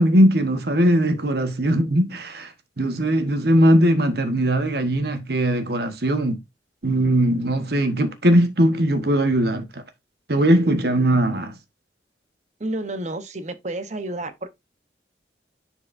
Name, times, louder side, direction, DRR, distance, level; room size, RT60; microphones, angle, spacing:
voice 1, 0.0-2.5 2.8-6.4 6.8-9.8 10.3-11.5, right 1 dB, 60° right, 1.2 m, -19 dB
voice 2, 12.6-14.5, right 2 dB, 40° right, 0.9 m, -30 dB
10.0 x 4.7 x 2.6 m
head